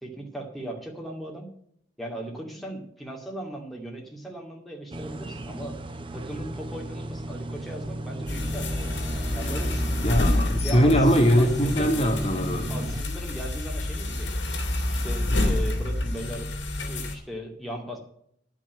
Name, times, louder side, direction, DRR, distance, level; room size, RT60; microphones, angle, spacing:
voice 1, 0.0-1.5 2.0-5.8 6.1-9.0 9.3-10.0 10.6-12.0 12.7-14.3 14.9-16.5 16.8-18.0, right 1 dB, ahead, -1 dB, 2.3 m, -37 dB
summertime outdoors, 4.9-13.0, right 1 dB, 30° right, 0.8 m, -35 dB
sound 1, 8.3-17.2, left 1 dB, 80° left, 2.9 m, -28 dB
voice 2, 10.0-12.7, equal, 35° left, 3 dB, 1.3 m, -21 dB
10.5 x 6.3 x 8.9 m, 0.69 s
head